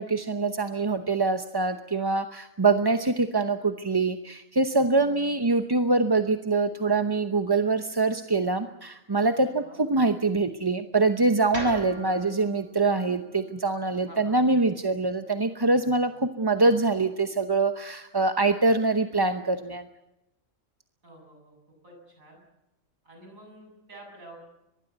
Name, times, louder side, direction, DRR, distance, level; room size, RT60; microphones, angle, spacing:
voice 1, 0.0-19.9, right 3 dB, 20° right, 8 dB, 0.8 m, -24 dB
voice 2, 9.4-9.8 14.1-14.4 21.0-21.5 21.8-22.4 23.0-24.4, right 1 dB, 85° right, 1 dB, 8.1 m, -48 dB
sound 1, 11.5-15.7, right 1 dB, 50° right, 5.6 m, -43 dB
23.5 x 20.5 x 8.1 m, 0.94 s
omnidirectional pair, 1.4 m